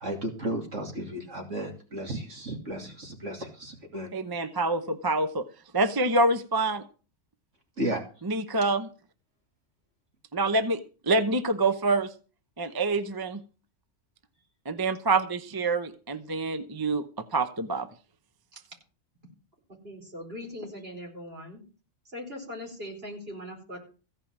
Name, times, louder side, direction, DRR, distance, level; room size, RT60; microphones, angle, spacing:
voice 1, 0.0-4.1 4.4-4.6 7.8-8.0, right 1 dB, 60° right, 2 dB, 3.0 m, -34 dB
voice 2, 4.1-5.5 5.7-6.8 8.3-8.9 10.3-10.8 11.1-12.1 12.6-13.4 14.7-17.9, right 2 dB, 20° right, 10 dB, 0.7 m, -26 dB
voice 3, 19.8-21.6 22.0-23.8, left 1 dB, 45° right, 0 dB, 4.9 m, -40 dB
15.5 x 5.6 x 8.8 m, 0.37 s
omnidirectional pair, 1.4 m